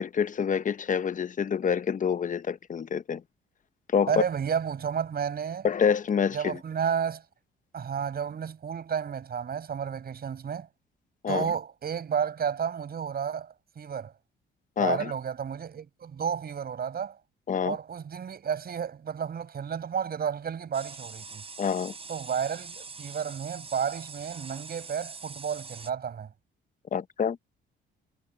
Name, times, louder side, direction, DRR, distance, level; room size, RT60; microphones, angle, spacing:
voice 1, 0.0-3.2 3.9-4.2 5.6-6.6 11.2-11.5 14.8-15.1 17.5-17.8 21.6-21.9 26.9-27.4, left 7 dB, 40° left, 0.8 m, -27 dB
voice 2, 4.1-5.7 6.3-7.2 7.7-10.7 11.3-14.1 14.8-17.2 17.6-21.4 22.1-26.3, right 7 dB, 50° right, 8.0 m, -32 dB
sound 1, 20.7-25.9, right 4 dB, 30° right, 4.6 m, -44 dB
cardioid pair, 90°, 20 cm